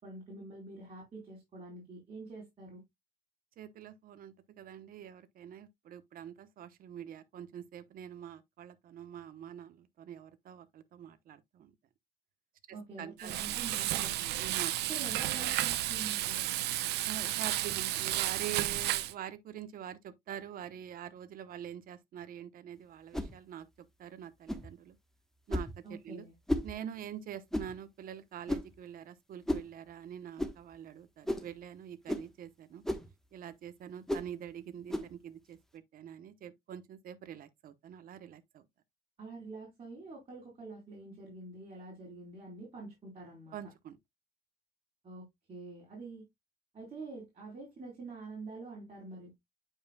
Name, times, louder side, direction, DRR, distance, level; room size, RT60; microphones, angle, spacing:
voice 1, 0.0-2.8 12.7-14.3 14.9-16.5 25.8-26.3 39.2-43.6 45.0-46.3 46.7-49.3, right 3 dB, 35° right, 4.1 m, -46 dB
voice 2, 3.6-11.7 12.7-13.6 14.4-14.7 17.0-25.0 25.5-26.3 26.6-32.8 33.3-38.6 43.5-44.0, right 9 dB, 60° right, 1.0 m, -45 dB
Frying (food), 13.2-19.1, right 14 dB, 80° right, 0.7 m, -32 dB
sound 1, 23.1-23.3 24.5-24.7 25.5-25.7 26.5-26.7 27.5-27.7 28.5-28.7 29.5-29.7 30.4-30.6 31.3-31.5 32.1-32.3 32.8-33.1 34.1-34.3 34.9-35.1, left 1 dB, 5° left, 1.1 m, -33 dB
8.8 x 5.5 x 2.2 m
cardioid pair, 110°, 17 cm